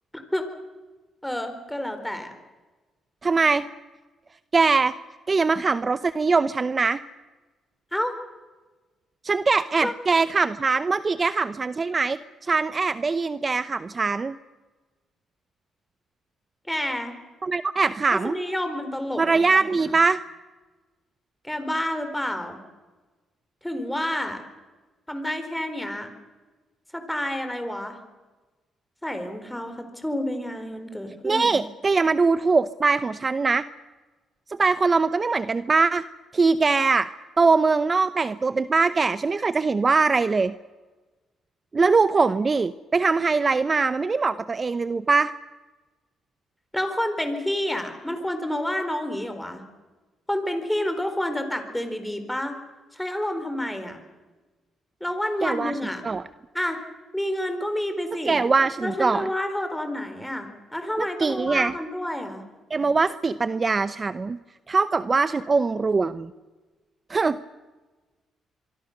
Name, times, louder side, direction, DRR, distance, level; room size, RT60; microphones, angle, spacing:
voice 1, 0.1-0.4 1.2-2.3 7.9-8.1 9.8-9.9 16.7-17.2 18.1-20.0 21.4-22.6 23.6-24.4 25.1-26.1 26.9-28.0 29.0-31.6 46.7-49.6 50.3-52.5 52.9-54.0 55.0-56.1 56.5-56.8 57.1-58.4 58.8-62.4, left 1 dB, 5° left, 7 dB, 4.3 m, -29 dB
voice 2, 3.2-3.7 4.5-4.9 5.3-7.0 9.2-14.4 17.4-18.3 19.2-20.2 31.2-33.7 34.6-36.0 36.3-37.1 37.4-40.5 41.7-45.3 55.4-55.7 56.0-56.2 58.3-59.2 61.0-61.7 62.7-64.4 64.7-66.3 67.1-67.4, right 4 dB, 30° right, 14 dB, 0.7 m, -22 dB
24.5 x 24.5 x 6.7 m, 1.2 s
cardioid pair, 90°, 0 cm